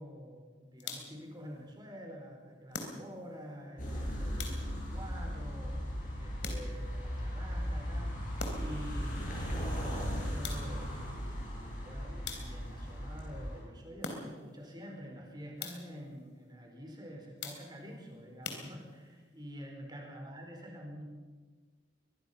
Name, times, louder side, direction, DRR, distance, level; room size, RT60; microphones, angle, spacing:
voice 1, 0.0-5.8 6.2-8.2 8.6-21.0, equal, 20° right, 1 dB, 4.7 m, -47 dB
sound 1, 0.8-1.3 2.7-3.4 4.4-5.0 6.4-7.0 8.4-8.9 10.4-11.0 12.2-12.8 14.0-14.6 15.6-16.1 17.4-17.9 18.4-19.2, left 4 dB, 65° left, 3.4 m, -43 dB
sound 2, 3.8-13.6, equal, 45° left, 7.4 m, -37 dB
23.5 x 21.0 x 5.8 m, 1.4 s
head